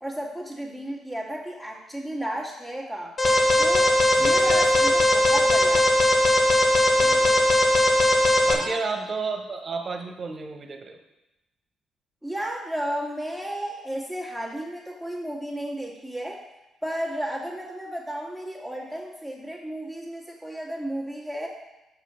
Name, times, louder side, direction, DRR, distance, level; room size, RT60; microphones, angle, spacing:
voice 1, 0.0-3.1 3.6-6.0 8.5-8.8 12.2-16.4 16.8-21.5, right 1 dB, 5° left, -2 dB, 2.3 m, -33 dB
Alarm, 3.2-8.5, left 1 dB, 50° left, 1.5 m, -19 dB
voice 2, 4.2-4.7 7.0-7.4 8.5-11.0, right 4 dB, 45° right, 4 dB, 1.3 m, -32 dB
6.6 x 6.2 x 5.2 m, 0.96 s
hypercardioid pair, 45°, 0 cm